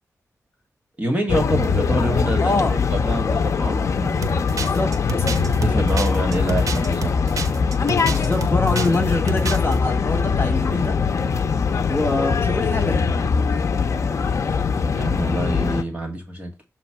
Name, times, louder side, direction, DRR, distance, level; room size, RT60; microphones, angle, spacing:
voice 1, 1.0-4.3 5.6-7.1 14.9-16.5, right 1 dB, 25° right, 1.6 m, -26 dB
sound 1, 1.3-15.8, left 5 dB, 60° left, 0.5 m, -22 dB
voice 2, 2.4-2.8 4.4-5.3 8.1-11.0 11.9-13.0, left 2 dB, 45° left, 1.4 m, -25 dB
sound 2, 4.2-9.0 9.3-9.8, right 5 dB, 80° right, 0.7 m, -30 dB
7.1 x 3.0 x 5.8 m
wide cardioid pair, 150°, 6 cm